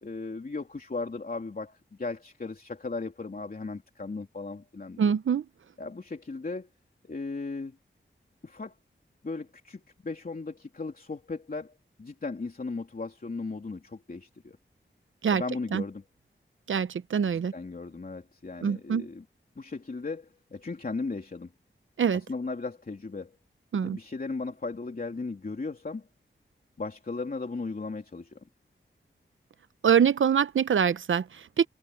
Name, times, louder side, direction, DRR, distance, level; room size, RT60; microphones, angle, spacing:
voice 1, 0.0-5.2 5.8-6.7 7.0-7.8 8.4-8.7 9.2-14.6 15.3-16.0 17.2-19.2 19.5-21.5 22.1-23.4 23.8-26.1 26.8-28.5, left 3 dB, 45° left, 3.1 m, -36 dB
voice 2, 5.0-5.4 15.2-15.4 15.7-15.8 16.7-17.5 18.6-19.1 22.0-22.2 23.7-24.0 29.8-31.7, right 7 dB, 75° right, 0.7 m, -24 dB
wide cardioid pair, 85°, 20 cm